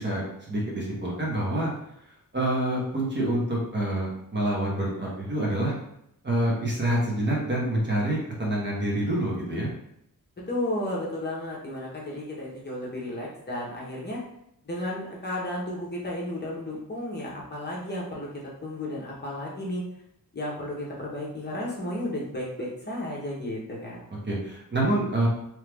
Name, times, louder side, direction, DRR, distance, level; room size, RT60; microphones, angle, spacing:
voice 1, 0.0-1.7 2.3-5.7 6.2-9.7 24.2-25.3, right 1 dB, 30° right, -4 dB, 0.9 m, -27 dB
voice 2, 10.5-14.2 14.6-18.3 18.6-19.8 20.3-24.0, left 1 dB, 30° left, -4 dB, 0.7 m, -33 dB
3.0 x 2.4 x 3.3 m, 0.76 s
wide cardioid pair, 145°, 35 cm